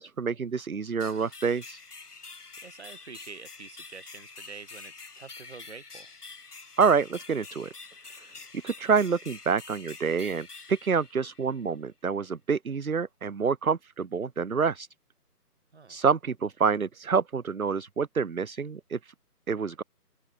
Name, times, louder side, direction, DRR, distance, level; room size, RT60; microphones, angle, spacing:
voice 1, 0.0-1.8 6.8-7.7 8.6-14.9 15.9-19.1 19.5-19.8, right 5 dB, 60° right, 1.0 m, -27 dB
sound 1, 1.0-11.7, left 4 dB, 70° left, 1.8 m, -47 dB
voice 2, 2.6-6.1 15.7-16.0, right 5 dB, 45° right, 6.1 m, -47 dB
open air
figure-of-eight pair, 160°, 48 cm